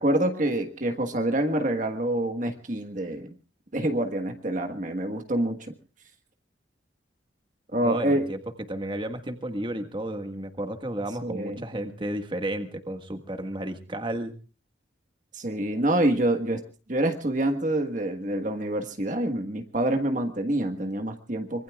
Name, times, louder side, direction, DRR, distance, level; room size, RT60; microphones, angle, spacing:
voice 1, 0.0-3.3 3.7-5.7 7.7-8.3 11.2-11.6 15.3-16.6 16.9-21.6, right 1 dB, 40° right, 5 dB, 1.5 m, -26 dB
voice 2, 7.7-8.4 8.7-14.3, right 1 dB, 25° right, 7 dB, 1.6 m, -32 dB
25.0 x 23.0 x 2.4 m, 0.35 s
head